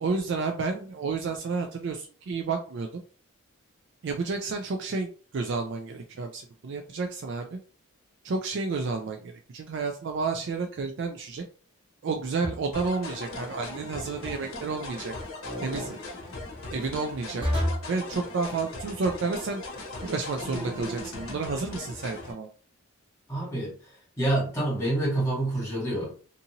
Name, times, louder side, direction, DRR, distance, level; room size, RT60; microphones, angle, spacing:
voice 1, 0.0-3.0 4.0-7.6 8.2-11.4 12.0-15.1 15.6-16.0 16.7-17.5 17.9-19.6 20.0-22.5, right 4 dB, 55° right, 4 dB, 0.3 m, -31 dB
sound 1, 12.4-12.9 15.4-15.9 17.4-18.0 20.4-21.1, equal, 25° right, 1.1 m, -31 dB
sound 2, 12.7-22.3, left 2 dB, 85° left, 0.9 m, -39 dB
voice 2, 23.3-23.7 24.2-26.1, right 1 dB, 15° left, -6 dB, 1.5 m, -27 dB
2.6 x 2.6 x 2.8 m, 0.41 s
head